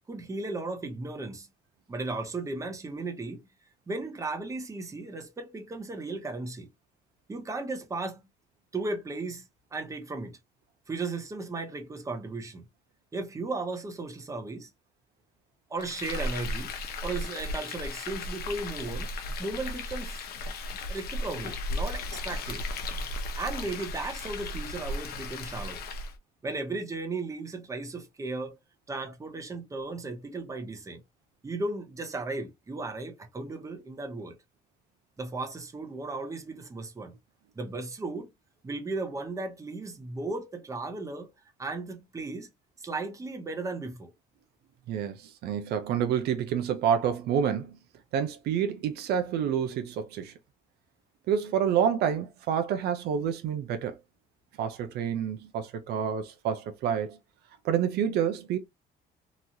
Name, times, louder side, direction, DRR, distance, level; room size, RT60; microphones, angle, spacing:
voice 1, 0.1-1.5 1.9-3.4 3.9-6.7 7.3-8.2 8.7-10.4 10.9-12.6 13.1-14.7 15.7-16.7 17.0-19.1 19.4-20.2 20.9-22.6 23.3-25.8 26.4-28.6 28.9-31.0 31.4-34.4 35.2-37.1 37.6-38.3 38.6-41.3 41.6-42.5 42.8-44.1, right 3 dB, 20° right, 0.7 m, -35 dB
Frying (food), 15.8-26.2, left 2 dB, 65° left, 0.7 m, -35 dB
voice 2, 44.9-47.8 48.1-50.3 51.3-54.0 54.6-57.2 57.6-58.6, right 8 dB, 75° right, 0.6 m, -28 dB
3.0 x 2.3 x 2.6 m
cardioid pair, 110°, 17 cm